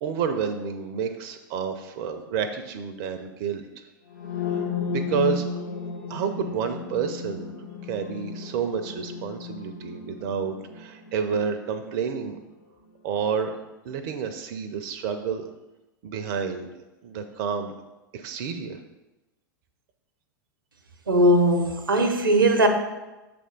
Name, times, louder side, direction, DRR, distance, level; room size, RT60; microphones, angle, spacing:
voice 1, 0.0-3.6 4.5-5.5 6.1-7.5 7.9-12.4 13.0-13.6 13.8-15.5 16.0-17.7 18.1-18.8, right 6 dB, 45° right, 7 dB, 0.5 m, -30 dB
sound 1, 4.1-11.9, left 5 dB, 60° left, 1.0 m, -33 dB
voice 2, 21.1-22.7, right 1 dB, 85° right, 6 dB, 0.7 m, -19 dB
6.3 x 3.4 x 5.1 m, 1.1 s
figure-of-eight pair, 95°, 11 cm